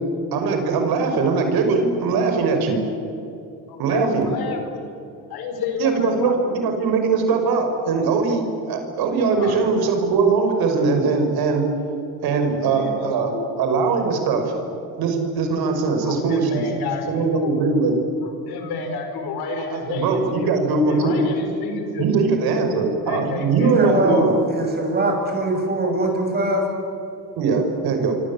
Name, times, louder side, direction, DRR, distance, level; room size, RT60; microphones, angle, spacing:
voice 1, 0.3-2.8 3.8-4.3 5.8-11.6 12.2-14.5 14.9-16.6 17.1-17.9 19.7-21.2 22.0-24.3 27.4-28.2, right 4 dB, 65° right, 5 dB, 5.9 m, -21 dB
voice 2, 3.7-4.9 5.3-6.4 9.3-9.7 12.4-13.5 16.0-17.5 18.2-20.5 20.9-22.1 23.0-24.3, left 4 dB, 70° left, 5 dB, 5.3 m, -30 dB
voice 3, 23.7-24.3 24.5-26.7, right 2 dB, 25° right, 2 dB, 8.0 m, -22 dB
26.5 x 25.0 x 8.7 m, 2.8 s
cardioid pair, 105°, 39 cm